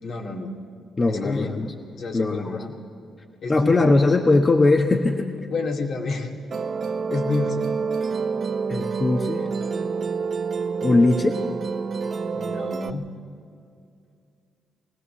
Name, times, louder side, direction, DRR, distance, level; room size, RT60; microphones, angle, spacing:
voice 1, 0.0-0.5 1.1-1.5 2.0-2.8 3.4-3.7 5.5-6.3 7.1-7.7 12.3-13.1, left 3 dB, 70° left, 0 dB, 2.3 m, -29 dB
voice 2, 1.0-1.7 2.1-2.6 3.5-5.3 8.7-9.5 10.8-11.4, left 2 dB, 35° left, 3 dB, 1.3 m, -20 dB
Musical instrument, 6.5-12.9, right 5 dB, 55° right, 0.8 m, -28 dB
23.0 x 16.5 x 7.1 m, 2.4 s
supercardioid pair, 55°, 0 cm